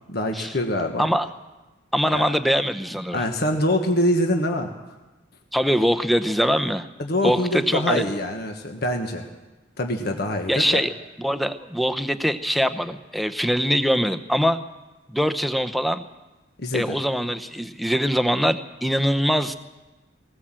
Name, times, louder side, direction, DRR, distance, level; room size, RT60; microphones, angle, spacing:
voice 1, 0.1-1.1 2.1-2.3 3.1-4.7 7.0-9.3 9.8-10.8 16.6-17.0, left 1 dB, 55° left, 3 dB, 1.5 m, -24 dB
voice 2, 1.9-3.2 5.5-6.9 7.2-8.0 10.5-10.9 11.2-14.6 15.1-16.0 16.7-19.5, equal, ahead, 8 dB, 0.8 m, -23 dB
19.5 x 19.0 x 7.6 m, 1.1 s
head